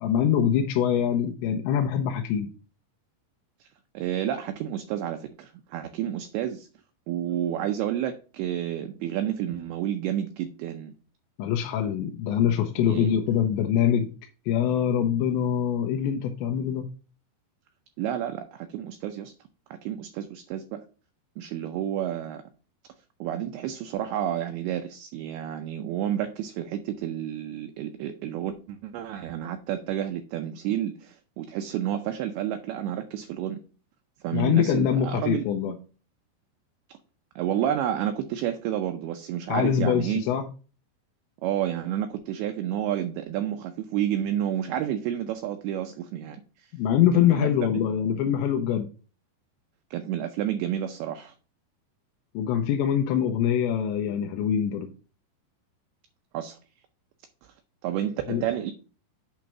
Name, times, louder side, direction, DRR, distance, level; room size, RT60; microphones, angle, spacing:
voice 1, 0.0-2.5 11.4-14.1 14.5-16.8 34.3-35.7 39.5-40.4 46.7-48.9 52.3-54.9 58.3-58.4, left 9 dB, 90° left, 2.9 m, -24 dB
voice 2, 3.9-6.7 7.1-10.9 12.8-13.2 18.0-19.3 19.7-20.8 21.4-22.4 23.2-33.6 34.2-35.4 37.4-40.2 41.4-46.7 47.3-47.5 47.7-47.8 49.9-51.3 56.3-56.6 57.8-58.7, right 11 dB, 85° right, 2.3 m, -30 dB
8.6 x 3.1 x 5.8 m
omnidirectional pair, 5.1 m